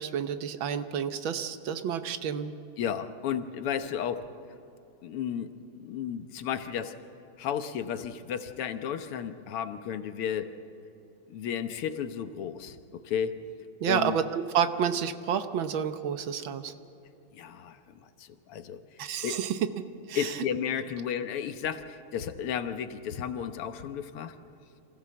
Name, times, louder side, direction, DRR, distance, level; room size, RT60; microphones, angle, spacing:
voice 1, 0.0-2.5 13.8-16.7 19.0-19.6 20.1-20.3, right 8 dB, 70° right, 10 dB, 1.6 m, -29 dB
voice 2, 2.8-4.2 5.0-5.5 5.8-7.0 7.4-10.5 11.3-12.8 13.0-13.4 13.9-14.2 17.3-18.8 19.2-19.4 20.2-24.4, left 8 dB, 90° left, 9 dB, 2.0 m, -33 dB
25.5 x 15.5 x 7.5 m, 3.0 s
omnidirectional pair, 2.4 m